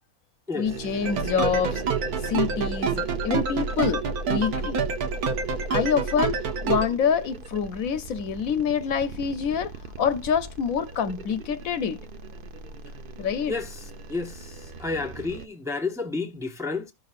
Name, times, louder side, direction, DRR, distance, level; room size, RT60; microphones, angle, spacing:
voice 1, 0.6-1.8 2.2-4.8 5.7-9.7 10.0-12.0 13.2-13.6, left 7 dB, 70° left, 1.1 m, -26 dB
sound 1, 0.6-15.5, right 4 dB, 45° right, 0.9 m, -41 dB
sound 2, 1.1-6.9, right 5 dB, 85° right, 1.5 m, -27 dB
voice 2, 13.5-13.8 14.1-16.9, left 3 dB, ahead, 0.9 m, -31 dB
14.5 x 6.1 x 2.5 m
omnidirectional pair, 1.5 m